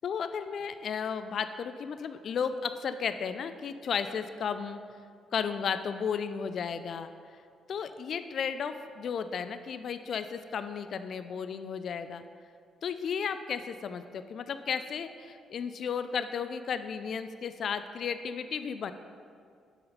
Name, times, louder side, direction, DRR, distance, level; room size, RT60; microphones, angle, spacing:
voice 1, 0.0-4.8 5.3-7.1 7.7-12.2 12.8-18.9, left 6 dB, 60° left, 10 dB, 0.3 m, -34 dB
6.6 x 4.1 x 5.5 m, 2.3 s
cardioid pair, 90°, 0 cm